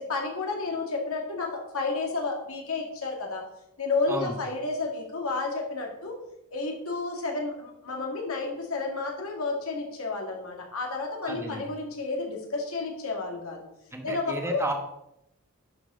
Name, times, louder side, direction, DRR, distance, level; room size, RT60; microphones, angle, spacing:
voice 1, 0.0-3.4 3.8-6.2 6.5-13.6 14.0-14.6, left 3 dB, 70° left, 1 dB, 2.1 m, -31 dB
voice 2, 11.3-11.7 13.9-14.7, right 1 dB, 10° right, 3 dB, 1.1 m, -32 dB
10.5 x 7.2 x 3.8 m, 0.84 s
head